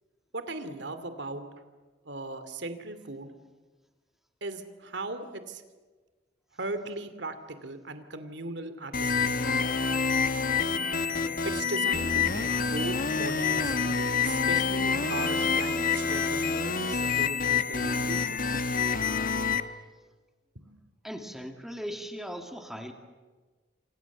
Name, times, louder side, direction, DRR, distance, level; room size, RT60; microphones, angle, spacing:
voice 1, 0.3-1.4 2.1-3.3 4.4-5.6 6.6-9.6 11.4-18.4 20.7-20.8, right 2 dB, 65° right, 10 dB, 2.7 m, -38 dB
sound 1, 8.9-19.6, left 5 dB, 50° left, 1.3 m, -27 dB
voice 2, 21.0-22.9, equal, ahead, 4 dB, 2.3 m, -38 dB
29.0 x 27.0 x 7.3 m, 1.3 s
head